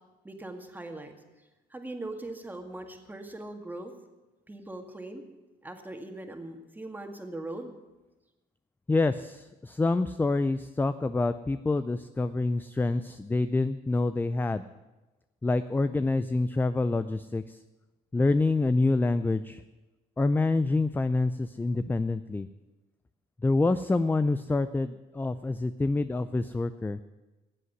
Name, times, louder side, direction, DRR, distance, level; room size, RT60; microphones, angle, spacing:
voice 1, 0.2-1.2 1.7-3.9 4.5-5.2 5.6-7.7, right 2 dB, 10° right, 5 dB, 2.0 m, -40 dB
voice 2, 8.9-14.6 15.4-17.6 18.1-19.6 20.2-22.5 23.4-27.0, left 3 dB, 10° left, 12 dB, 0.5 m, -27 dB
16.0 x 8.3 x 9.6 m, 1.1 s
cardioid pair, 110°, 17 cm